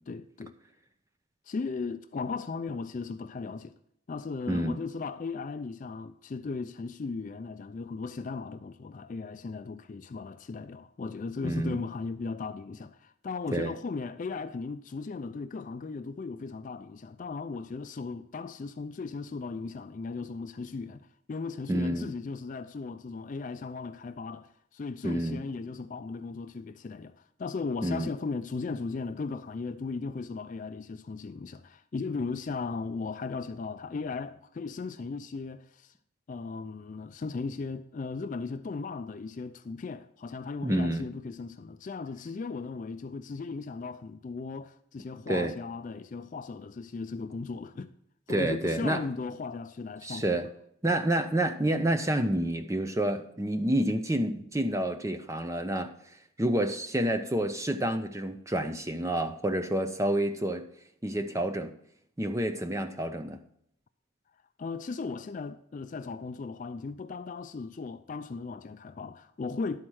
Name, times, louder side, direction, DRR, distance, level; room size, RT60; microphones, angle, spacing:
voice 1, 0.1-0.6 1.5-3.7 4.1-35.9 36.3-47.9 48.3-50.5 64.6-69.8, left 4 dB, 40° left, 0.3 m, -37 dB
voice 2, 4.5-4.8 11.4-11.8 13.5-13.7 21.7-22.1 25.0-25.4 27.8-28.1 40.6-41.1 45.3-45.5 48.3-49.0 50.0-50.5 50.8-55.9 56.4-60.7 61.0-61.7 62.2-63.4, right 1 dB, 15° right, 0.6 m, -28 dB
11.5 x 4.3 x 6.2 m
head